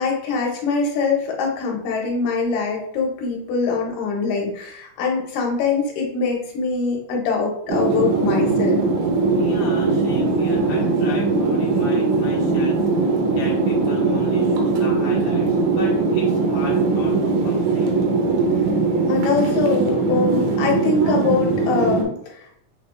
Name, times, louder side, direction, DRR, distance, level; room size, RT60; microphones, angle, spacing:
voice 1, 0.0-8.8 19.1-22.5, left 4 dB, 85° left, -1 dB, 2.6 m, -23 dB
sound 1, 7.7-22.0, right 3 dB, 85° right, 2.2 m, -20 dB
voice 2, 9.4-18.0, left 2 dB, 50° left, -6 dB, 1.1 m, -36 dB
6.7 x 3.1 x 2.3 m, 0.68 s
omnidirectional pair, 3.7 m